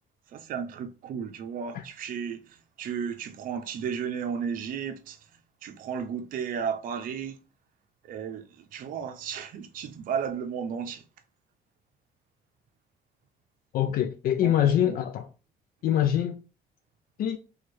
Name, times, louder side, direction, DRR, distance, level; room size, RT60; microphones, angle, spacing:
voice 1, 0.3-5.2 5.6-7.4 8.1-11.0 14.4-15.0, right 7 dB, 55° right, 0.5 m, -34 dB
voice 2, 13.7-15.3 15.8-16.4 17.2-17.4, left 10 dB, 60° left, 0.4 m, -24 dB
3.0 x 2.3 x 4.3 m
cardioid pair, 110°, 17 cm